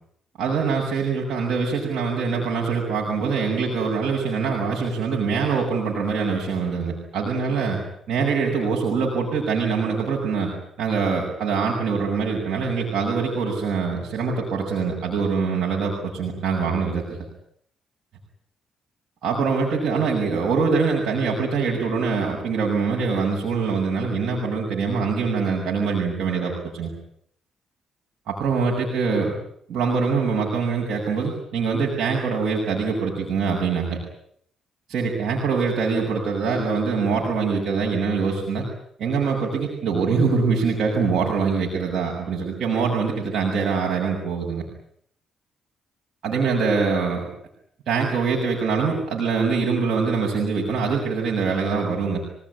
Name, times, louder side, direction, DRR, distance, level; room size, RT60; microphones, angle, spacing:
voice 1, 0.4-7.8 8.1-10.5 10.8-17.2 19.2-26.9 28.3-29.3 29.7-34.0 34.9-38.7 39.0-44.7 46.2-47.2 47.9-52.2, right 5 dB, 70° right, -2 dB, 7.1 m, -24 dB
26.5 x 18.5 x 9.9 m, 0.69 s
cardioid pair, 90°, 0 cm